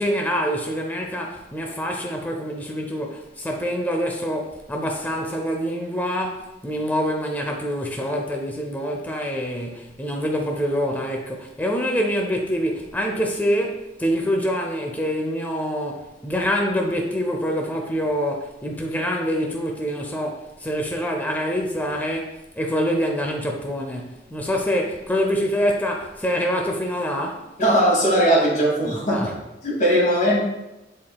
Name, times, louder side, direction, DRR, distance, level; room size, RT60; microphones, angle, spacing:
voice 1, 0.0-27.5 29.1-29.3, equal, 10° left, 1 dB, 0.6 m, -25 dB
voice 2, 27.6-29.2 29.6-30.4, equal, 45° left, -4 dB, 2.1 m, -19 dB
10.5 x 4.4 x 2.3 m, 0.97 s
head